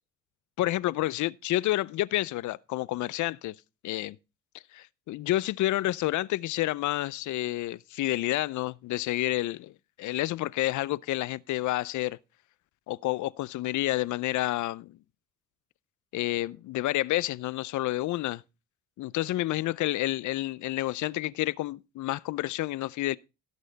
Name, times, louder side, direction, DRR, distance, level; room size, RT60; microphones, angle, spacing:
voice 1, 0.6-3.5 3.8-4.2 4.7-12.2 12.9-15.0 16.1-18.4 19.0-23.2, left 16 dB, 75° left, 0.6 m, -29 dB
16.5 x 6.4 x 4.0 m
cardioid pair, 90°, 30 cm